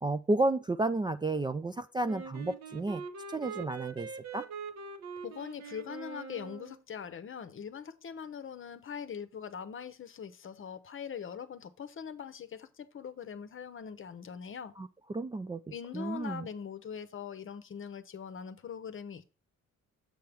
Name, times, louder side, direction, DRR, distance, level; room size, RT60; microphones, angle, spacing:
voice 1, 0.0-3.0 3.3-4.5 14.8-15.6 15.9-16.5, right 2 dB, 15° right, 0.3 m, -32 dB
Wind instrument woodwind instrument, 2.1-6.8, right 5 dB, 60° right, 1.1 m, -43 dB
voice 2, 5.2-14.7 15.7-19.4, left 7 dB, 40° left, 0.8 m, -42 dB
7.6 x 5.7 x 3.4 m
cardioid pair, 90°, 30 cm